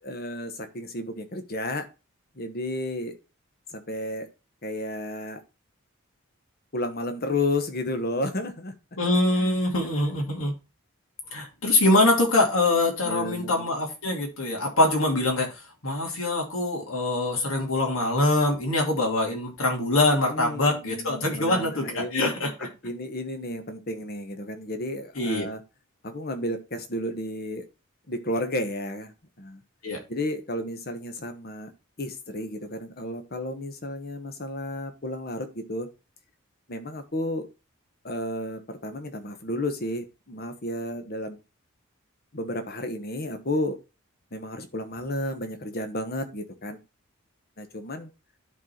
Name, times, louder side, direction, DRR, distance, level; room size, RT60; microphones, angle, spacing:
voice 1, 0.0-1.9 2.3-3.2 3.7-4.3 4.6-5.4 6.7-8.7 9.4-9.8 13.0-13.7 20.2-22.3 22.6-25.6 26.0-27.6 28.1-29.6 30.1-31.7 32.0-35.9 36.7-37.5 38.0-41.4 42.3-43.8 44.3-46.8 47.6-48.1, left 1 dB, 45° left, 8 dB, 1.2 m, -32 dB
voice 2, 9.0-10.5 11.3-15.5 15.8-22.5 25.2-25.4 29.8-30.0, left 2 dB, 75° left, 0 dB, 2.7 m, -24 dB
10.5 x 4.0 x 4.4 m, 0.29 s
head